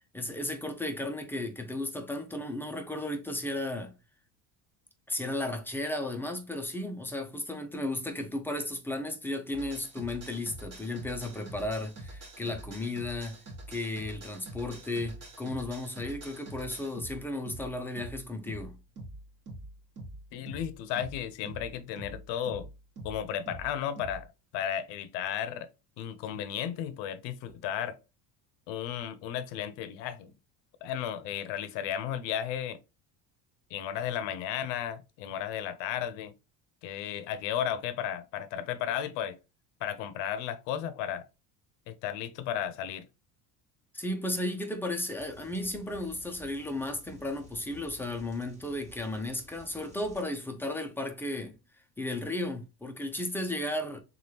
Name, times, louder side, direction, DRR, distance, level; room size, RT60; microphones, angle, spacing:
voice 1, 0.1-3.9 5.1-13.4 13.7-18.8 43.9-51.6 52.0-54.0, left 1 dB, 5° left, 0.4 m, -34 dB
sound 1, 9.5-24.3, right 1 dB, 35° right, 1.3 m, -45 dB
voice 2, 20.3-22.7 23.0-24.3 24.5-25.7 26.0-28.0 28.7-30.3 30.8-32.8 33.7-36.3 36.8-39.4 39.8-41.3 41.9-43.1, left 10 dB, 75° left, 0.6 m, -34 dB
sound 2, 45.2-50.2, equal, 15° right, 1.2 m, -54 dB
3.3 x 2.4 x 2.7 m
cardioid pair, 110°, 43 cm